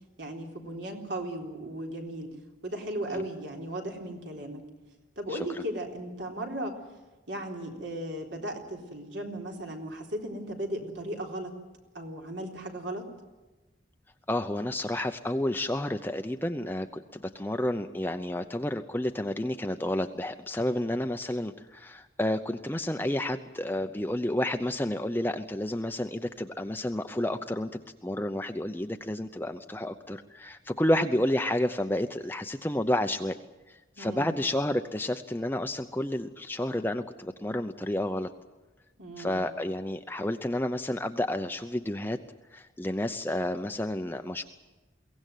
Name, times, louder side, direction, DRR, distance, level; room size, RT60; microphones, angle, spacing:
voice 1, 0.2-2.3 2.6-4.6 5.2-6.8 7.3-11.5 11.9-13.1 33.9-34.4 39.0-39.4, right 1 dB, 70° right, 2 dB, 3.9 m, -36 dB
voice 2, 14.3-27.7 28.0-33.4 33.7-38.3 39.2-42.2 42.5-44.4, left 1 dB, 10° left, 7 dB, 0.7 m, -30 dB
23.0 x 17.5 x 9.2 m, 1.1 s
head